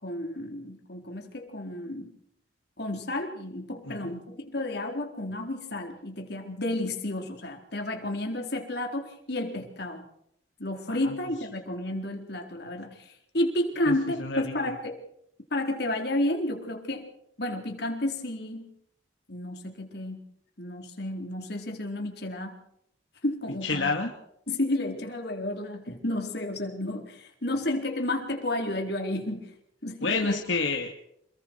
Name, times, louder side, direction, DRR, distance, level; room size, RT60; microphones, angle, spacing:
voice 1, 0.0-2.1 2.8-10.0 10.6-15.0 15.5-17.1 17.4-18.7 19.3-20.2 20.6-22.6 23.2-23.9 24.5-29.5 29.8-30.4, left 1 dB, 55° left, 2 dB, 4.2 m, -31 dB
voice 2, 14.2-14.5 23.6-24.1 30.0-31.0, left 3 dB, 75° left, 2 dB, 2.3 m, -29 dB
28.0 x 22.5 x 4.7 m, 0.74 s
head